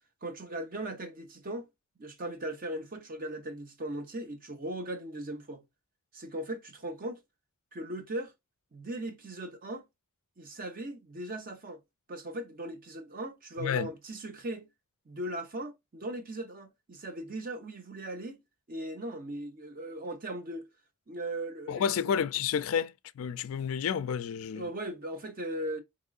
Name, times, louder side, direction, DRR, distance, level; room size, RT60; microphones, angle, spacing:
voice 1, 0.2-1.7 2.0-5.6 6.1-7.2 7.7-8.3 8.7-9.9 10.4-11.8 12.1-14.7 15.1-18.4 18.7-20.7 21.1-22.1 24.5-25.8, right 1 dB, 40° right, 0.8 m, -38 dB
voice 2, 21.7-24.6, left 7 dB, 65° left, 0.3 m, -30 dB
3.7 x 3.0 x 2.3 m
head